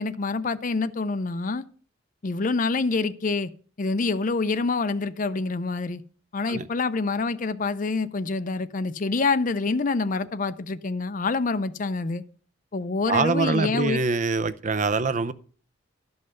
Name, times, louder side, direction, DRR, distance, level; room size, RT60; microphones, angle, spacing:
voice 1, 0.0-1.6 2.2-3.5 3.8-6.0 6.3-12.2 12.7-14.0, left 3 dB, 45° left, 0.5 m, -26 dB
voice 2, 13.1-15.3, right 4 dB, 40° right, 0.5 m, -24 dB
12.5 x 5.5 x 6.5 m
head